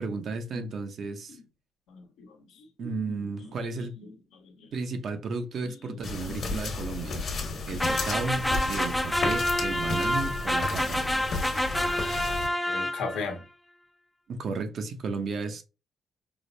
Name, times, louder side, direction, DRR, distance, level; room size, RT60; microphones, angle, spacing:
voice 1, 0.0-1.4 2.8-4.0 4.7-7.3 7.7-11.1 14.3-15.6, right 4 dB, 60° right, 0.7 m, -34 dB
voice 2, 1.9-4.7 5.6-6.7 7.0-7.9 9.7-10.1 10.8-13.4, left 4 dB, 90° left, 1.0 m, -42 dB
sound 1, 6.0-12.5, left 3 dB, 60° left, 1.1 m, -33 dB
sound 2, 7.8-13.3, left 1 dB, 5° left, 0.4 m, -28 dB
4.8 x 2.0 x 2.6 m
cardioid pair, 90°, 0 cm